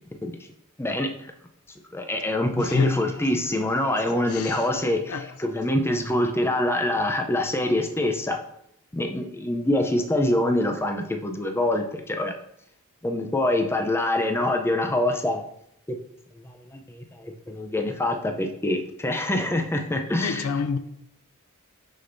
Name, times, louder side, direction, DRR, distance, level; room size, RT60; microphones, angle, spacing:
voice 1, 0.8-1.3 1.9-8.4 8.9-12.3 13.0-15.4 15.9-16.0 16.4-20.4, left 1 dB, 10° left, 0.5 m, -25 dB
voice 2, 2.6-3.3 3.6-4.0 4.2-5.4 20.2-20.8, left 5 dB, 80° left, 0.4 m, -29 dB
6.3 x 6.0 x 2.6 m
head